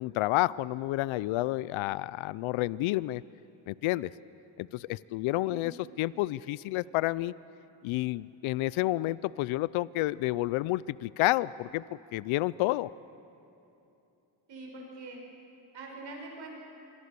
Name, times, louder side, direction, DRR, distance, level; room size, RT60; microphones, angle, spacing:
voice 1, 0.0-3.2 3.7-4.1 4.6-7.3 7.8-11.8 12.1-12.9, left 18 dB, 90° left, 20 dB, 0.5 m, -30 dB
voice 2, 14.5-15.2 15.7-16.5, right 2 dB, 65° right, 0 dB, 6.2 m, -43 dB
26.0 x 22.5 x 6.8 m, 2.9 s
cardioid pair, 105°, 46 cm